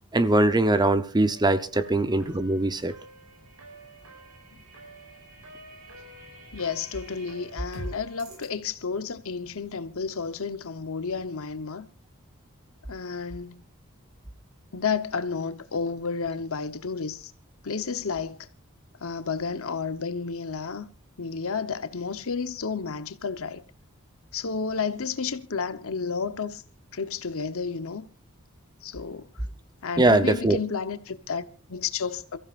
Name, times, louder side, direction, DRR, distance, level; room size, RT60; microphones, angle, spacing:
voice 1, 0.1-2.9 30.0-30.6, right 2 dB, 20° right, 0.8 m, -21 dB
sound 1, 1.2-8.5, right 1 dB, 80° right, 6.0 m, -45 dB
voice 2, 6.5-11.9 12.9-13.6 14.7-17.3 17.6-18.5 19.0-20.9 21.2-23.6 24.3-26.6 26.9-28.1 28.8-29.3 29.8-32.4, left 5 dB, 65° left, 1.0 m, -31 dB
28.0 x 14.5 x 2.5 m
head